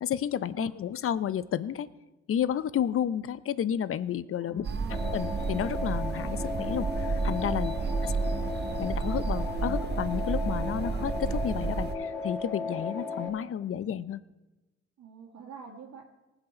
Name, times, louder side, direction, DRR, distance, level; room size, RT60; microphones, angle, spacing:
voice 1, 0.0-1.9 2.3-4.7 5.1-7.7 8.0-8.1 8.8-14.2, left 9 dB, 45° left, 17 dB, 0.6 m, -31 dB
voice 2, 4.4-5.0 7.7-8.2 15.0-16.1, right 5 dB, 65° right, -4 dB, 1.9 m, -46 dB
sound 1, 4.6-11.9, right 4 dB, 35° right, 0.8 m, -31 dB
sound 2, 4.9-13.3, left 3 dB, 5° left, 3.8 m, -36 dB
19.0 x 8.0 x 4.3 m, 1.1 s
cardioid pair, 90°, 30 cm